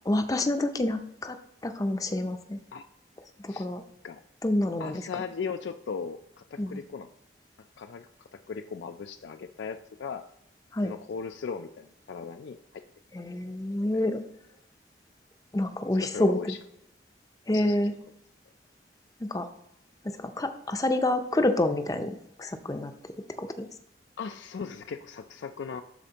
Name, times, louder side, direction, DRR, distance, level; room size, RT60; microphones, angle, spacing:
voice 1, 0.1-1.4 1.6-2.6 3.4-3.8 4.4-5.0 6.6-6.8 10.7-10.9 13.1-14.2 15.5-16.5 17.5-17.9 19.2-19.5 20.2-22.9 23.4-23.7, left 1 dB, 20° left, 8 dB, 0.5 m, -28 dB
voice 2, 4.8-7.1 7.8-10.2 10.8-12.8 13.9-14.0 15.9-16.6 17.5-17.8 24.2-25.8, left 5 dB, 80° left, 8 dB, 0.4 m, -38 dB
12.0 x 4.3 x 2.8 m, 0.80 s
head